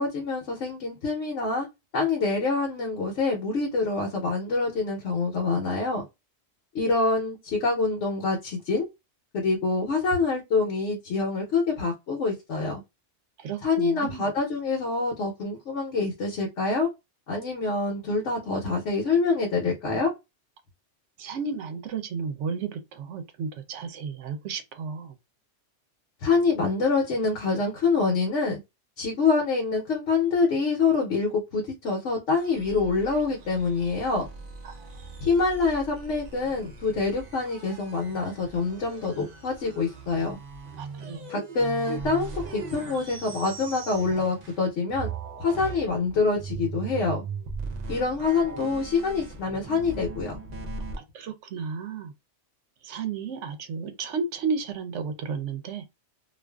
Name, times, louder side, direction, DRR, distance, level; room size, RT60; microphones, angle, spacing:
voice 1, 0.0-1.7 1.9-6.0 6.7-8.9 9.3-12.8 13.6-16.9 17.3-20.1 26.2-28.6 29.0-34.3 35.2-40.4 41.3-45.1 45.4-47.2 47.9-50.4, left 4 dB, 70° left, 1.0 m, -26 dB
voice 2, 13.4-14.3 21.2-25.2 34.6-35.1 40.8-41.4 51.1-52.1 52.8-55.8, right 5 dB, 75° right, 0.9 m, -33 dB
sound 1, 32.4-44.6 44.9-51.0, right 4 dB, 50° right, 0.5 m, -39 dB
2.4 x 2.4 x 2.2 m
omnidirectional pair, 1.3 m